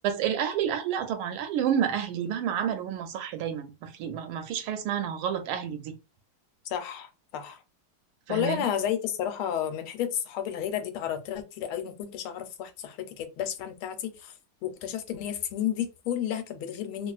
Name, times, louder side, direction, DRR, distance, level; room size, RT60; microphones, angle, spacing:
voice 1, 0.0-5.9 8.3-8.7, right 9 dB, 80° right, 1.4 m, -29 dB
voice 2, 6.6-7.6 8.3-14.3 14.6-17.1, left 10 dB, 85° left, 1.5 m, -32 dB
3.5 x 2.4 x 2.4 m
omnidirectional pair, 2.3 m